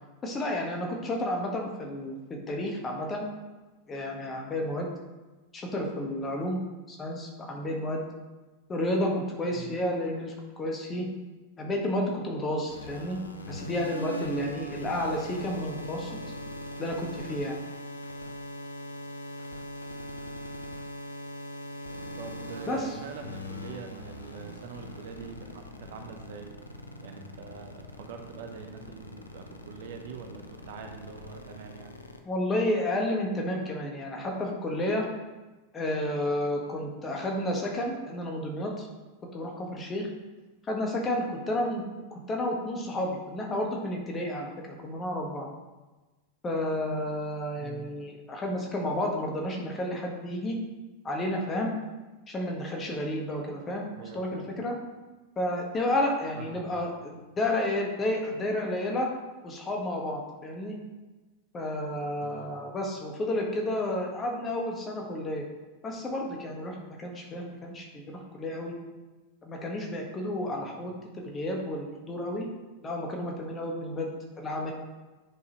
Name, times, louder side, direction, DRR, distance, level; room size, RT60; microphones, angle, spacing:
voice 1, 0.2-3.2 3.9-4.9 5.5-6.6 6.9-8.0 8.7-11.1 11.6-13.2 13.5-16.1 16.8-17.5 22.7-22.9 32.2-35.1 35.7-38.9 39.3-40.1 40.7-41.8 42.1-44.5 44.8-45.5 46.4-50.6 51.0-51.7 52.3-53.9 54.1-54.7 55.4-59.1 59.4-60.8 61.5-65.4 65.8-68.7 69.4-72.5 72.8-74.1 74.4-74.7, left 1 dB, 20° left, 1 dB, 1.4 m, -31 dB
sound 1, 12.7-32.2, left 1 dB, 80° left, 0.7 m, -41 dB
voice 2, 22.2-26.6 27.0-31.9 47.6-47.9 54.0-54.5 56.4-56.9 62.2-62.5 70.6-70.9, right 6 dB, 55° right, 3 dB, 0.9 m, -44 dB
9.9 x 5.4 x 3.1 m, 1.2 s
figure-of-eight pair, 90°, 0 cm